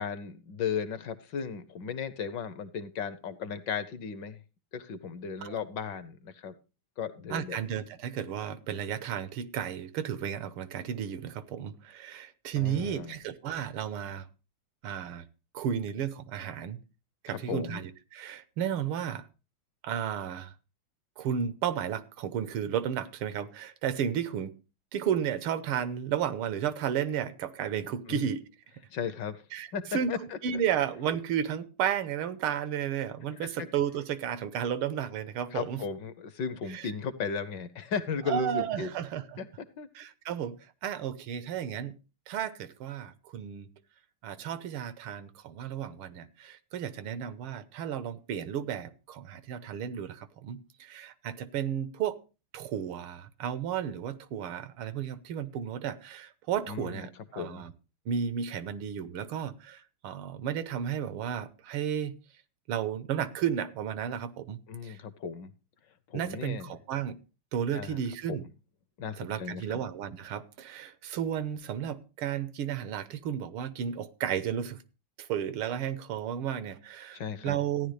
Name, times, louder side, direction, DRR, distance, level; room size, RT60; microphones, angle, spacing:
voice 1, 0.0-4.4 4.7-6.5 7.0-7.6 12.6-13.2 17.3-17.8 28.1-28.3 28.9-29.4 29.7-30.4 33.4-33.7 35.5-38.9 39.4-39.5 39.8-39.9 56.7-57.1 57.3-57.6 64.7-65.5 66.1-66.7 67.7-68.0 68.3-68.4 69.0-69.8 77.1-77.6, left 6 dB, 65° left, 1.3 m, -35 dB
voice 2, 7.3-14.3 14.8-15.3 15.5-16.8 17.2-19.3 19.8-20.5 21.2-24.6 24.9-28.4 29.5-30.1 30.4-35.8 36.7-36.9 38.3-39.4 40.0-42.0 42.3-43.7 44.2-52.2 52.5-57.7 58.1-62.1 62.7-65.0 66.1-67.2 67.5-68.5 69.2-74.8 75.2-77.9, right 9 dB, 85° right, 1.8 m, -33 dB
14.5 x 10.0 x 3.2 m
omnidirectional pair, 2.3 m